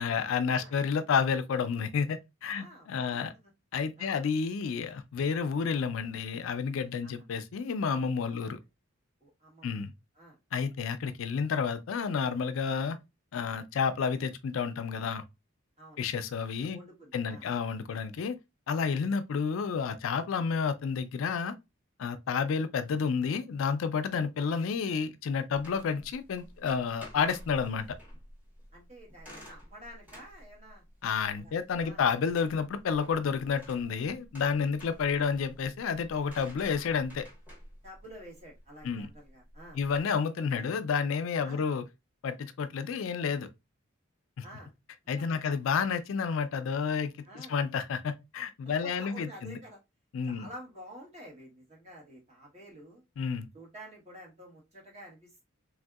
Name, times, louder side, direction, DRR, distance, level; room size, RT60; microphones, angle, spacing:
voice 1, 0.0-3.3 3.7-8.6 9.6-9.9 10.5-13.0 13.3-15.2 16.0-16.8 17.1-18.3 18.7-21.5 22.0-28.0 31.0-37.3 38.8-39.1 39.7-41.8 42.2-43.5 44.4-44.5 45.1-49.6 50.1-50.5 53.2-53.5, left 6 dB, 75° left, 0.4 m, -30 dB
voice 2, 2.5-3.5 4.0-4.2 7.0-7.1 8.3-8.5 9.2-9.7 10.1-10.4 15.8-16.0 16.7-17.4 28.7-30.8 31.3-31.5 31.8-32.0 34.8-35.0 37.8-39.8 40.5-40.7 41.4-41.7 44.4-44.7 45.2-45.5 47.2-47.6 48.8-49.8 50.3-53.0 53.5-55.3, equal, 35° right, 1.3 m, -50 dB
sound 1, 25.5-40.0, equal, 10° right, 1.2 m, -51 dB
3.5 x 2.6 x 2.3 m
head